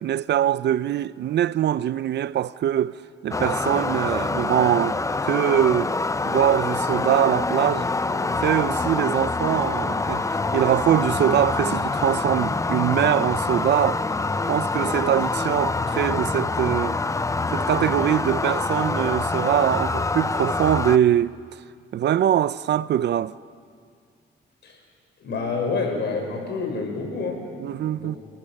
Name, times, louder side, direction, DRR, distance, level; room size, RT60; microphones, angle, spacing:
voice 1, 0.0-5.9 6.2-7.9 8.3-10.3 10.5-14.0 14.5-17.0 17.5-21.4 21.9-23.3 27.6-28.2, right 11 dB, 60° right, 0.5 m, -23 dB
sound 1, 3.3-21.0, left 3 dB, 15° left, 0.6 m, -25 dB
voice 2, 25.2-27.5 27.9-28.2, left 4 dB, 60° left, 6.2 m, -28 dB
30.0 x 19.0 x 6.5 m
cardioid pair, 90°, 20 cm